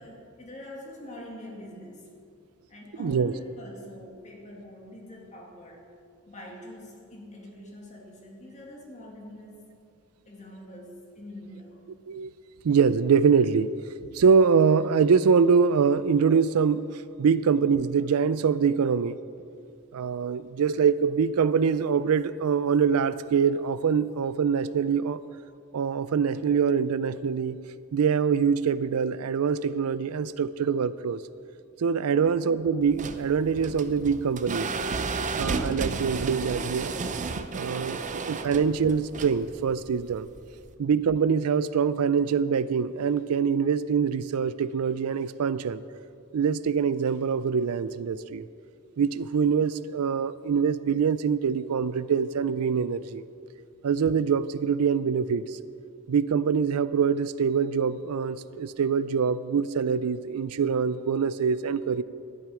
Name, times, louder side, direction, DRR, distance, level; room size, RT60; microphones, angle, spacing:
voice 1, 0.0-2.0 2.7-5.9 6.3-9.6 10.3-11.9 32.1-32.3, left 1 dB, 35° left, -1 dB, 2.2 m, -44 dB
voice 2, 3.0-3.3 12.1-12.3 12.6-13.7 14.1-19.2 19.9-25.2 25.7-27.6 27.9-31.2 31.8-34.7 35.4-36.9 37.4-40.3 40.8-45.8 46.3-48.5 49.0-53.2 53.8-55.6 56.1-62.0, right 6 dB, 90° right, 16 dB, 0.4 m, -24 dB
sound 1, 32.8-40.7, right 4 dB, 35° right, 0.6 m, -33 dB
12.5 x 10.5 x 4.9 m, 2.4 s
head